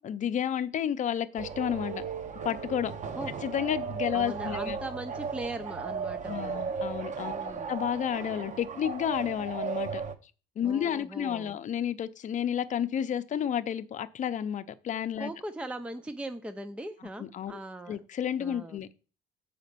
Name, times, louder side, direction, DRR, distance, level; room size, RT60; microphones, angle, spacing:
voice 1, 0.0-2.0 2.4-2.9 3.4-4.8 6.3-10.0 10.6-15.3 17.2-17.6 17.9-18.9, left 9 dB, 45° left, 0.7 m, -31 dB
sound 1, 1.4-10.1, right 5 dB, 45° right, 1.1 m, -36 dB
voice 2, 4.1-6.6 7.3-7.8 10.6-11.6 15.2-18.0 18.4-18.8, right 1 dB, 5° right, 0.6 m, -39 dB
7.0 x 5.1 x 6.9 m
cardioid pair, 110°, 17 cm